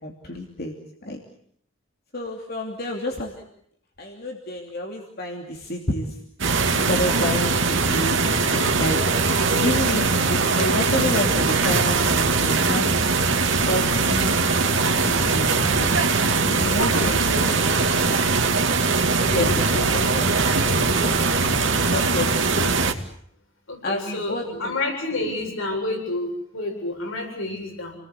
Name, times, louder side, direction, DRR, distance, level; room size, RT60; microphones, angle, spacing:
voice 1, 0.0-0.7 1.0-1.2 2.1-3.4 4.0-6.1 6.7-9.0 9.6-12.9 13.5-14.4 14.9-15.9 16.4-17.1 17.4-17.7 19.3-19.5 19.7-21.3 21.8-23.0 23.8-24.7 25.1-25.3, left 1 dB, 50° left, 1 dB, 2.9 m, -30 dB
sound 1, 6.4-22.9, right 4 dB, 65° right, 2.3 m, -21 dB
voice 2, 16.8-17.5 19.3-19.8 20.2-21.2 23.7-27.9, left 1 dB, 85° left, 2 dB, 7.9 m, -29 dB
29.0 x 20.0 x 8.4 m, 0.66 s
head